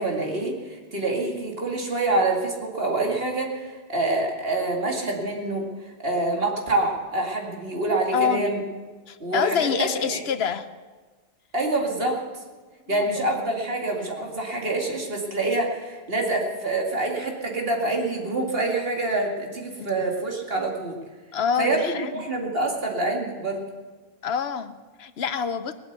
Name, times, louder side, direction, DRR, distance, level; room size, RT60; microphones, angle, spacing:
voice 1, 0.0-8.6 9.2-10.2 11.5-12.2 12.9-21.0 21.6-21.8 22.1-23.6, right 2 dB, 70° right, 0 dB, 2.6 m, -26 dB
voice 2, 8.1-8.5 9.1-10.7 12.9-13.1 19.8-20.0 21.3-22.3 24.2-25.7, left 7 dB, 80° left, 12 dB, 1.0 m, -26 dB
19.5 x 8.0 x 8.1 m, 1.4 s
omnidirectional pair, 1.0 m